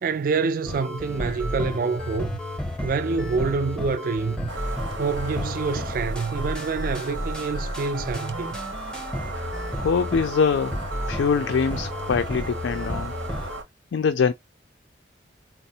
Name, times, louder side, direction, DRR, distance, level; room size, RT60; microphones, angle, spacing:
voice 1, 0.0-2.4 2.8-4.5 5.0-8.6, right 4 dB, 45° right, 0.3 m, -27 dB
sound 1, 0.7-13.6, left 1 dB, 5° left, 0.6 m, -32 dB
sound 2, 4.5-13.6, right 3 dB, 80° right, 0.7 m, -36 dB
voice 2, 9.8-10.8 11.1-13.1 13.9-14.3, left 6 dB, 75° left, 0.4 m, -23 dB
4.1 x 2.0 x 2.7 m
head